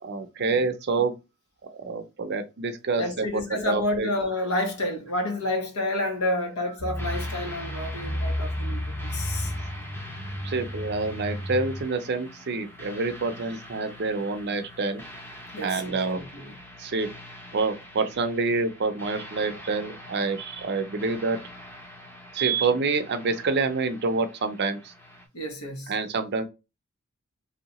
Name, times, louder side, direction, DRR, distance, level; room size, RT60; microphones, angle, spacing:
voice 1, 0.0-1.1 1.6-4.1 10.4-15.0 15.6-16.2 16.8-17.1 17.5-21.4 22.3-24.9 25.9-26.5, right 4 dB, 50° right, 0.5 m, -27 dB
voice 2, 3.0-9.5 15.5-16.6 25.3-25.9, left 1 dB, 90° left, 1.1 m, -30 dB
sound 1, 6.8-11.8, equal, 65° left, 1.5 m, -32 dB
sound 2, 6.9-25.3, left 1 dB, 10° left, 0.6 m, -44 dB
3.0 x 2.8 x 2.9 m
head